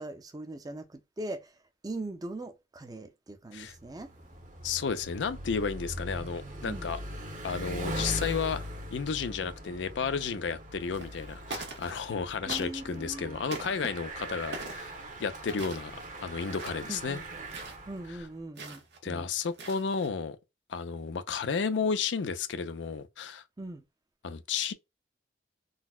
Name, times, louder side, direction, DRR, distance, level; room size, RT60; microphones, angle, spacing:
voice 1, 0.0-1.6 1.8-4.1 6.7-6.9 12.5-13.4 16.9-17.4 17.9-19.3 23.6-23.8, right 2 dB, 20° right, 0.5 m, -41 dB
Bicycle, 3.7-18.3, equal, 45° right, 0.9 m, -41 dB
voice 2, 4.6-7.0 7.4-8.6 8.9-14.9 15.2-17.2 19.0-20.4 20.7-23.4 24.2-24.7, left 5 dB, 90° left, 0.5 m, -32 dB
sound 1, 10.9-11.2 11.5-12.1 12.5-13.0 13.5-13.9 14.5-14.9 15.5-16.1 16.5-16.9 17.5-17.8 18.6-19.0 19.4-20.1, right 3 dB, 75° right, 1.1 m, -42 dB
4.0 x 2.1 x 2.2 m
head